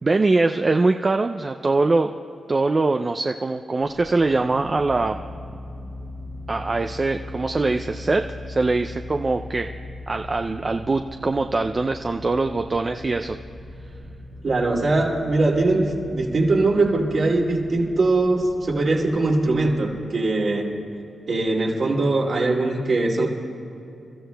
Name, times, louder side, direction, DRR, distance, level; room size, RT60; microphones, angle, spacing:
voice 1, 0.0-2.1 2.5-5.2 6.5-9.7 10.1-13.4, right 3 dB, 40° right, 5 dB, 0.4 m, -22 dB
sound 1, 3.8-20.0, left 1 dB, 80° right, 2.7 m, -39 dB
voice 2, 14.4-15.9 16.1-20.7 21.3-23.3, right 2 dB, 65° right, -2 dB, 2.6 m, -21 dB
28.5 x 13.5 x 2.3 m, 2.8 s
supercardioid pair, 45°, 0 cm